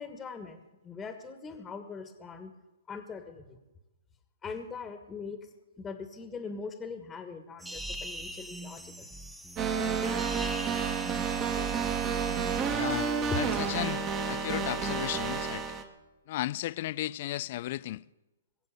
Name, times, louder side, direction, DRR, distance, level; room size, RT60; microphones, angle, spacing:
voice 1, 0.0-2.5 2.9-3.6 4.4-5.4 5.8-9.1, left 5 dB, 15° left, 1.6 m, -42 dB
sound 1, 7.6-12.6, equal, 5° right, 1.2 m, -42 dB
sound 2, 9.6-15.8, right 6 dB, 30° right, 1.8 m, -30 dB
voice 2, 12.7-14.0 14.3-15.6 16.3-18.0, left 15 dB, 50° left, 0.4 m, -35 dB
21.0 x 7.8 x 7.6 m
hypercardioid pair, 125°, 0 cm